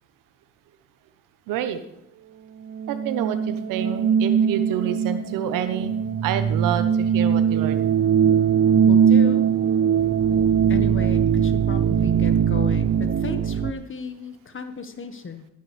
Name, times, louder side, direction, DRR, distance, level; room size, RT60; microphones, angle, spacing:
voice 1, 1.5-1.8 2.9-6.0 6.2-7.9, right 9 dB, 75° right, 10 dB, 1.2 m, -28 dB
sound 1, 2.7-13.7, right 8 dB, 40° right, 0.8 m, -20 dB
voice 2, 8.9-9.5 10.7-15.5, left 5 dB, 40° left, 8 dB, 1.6 m, -34 dB
12.5 x 12.0 x 3.5 m, 0.79 s
supercardioid pair, 60°, 32 cm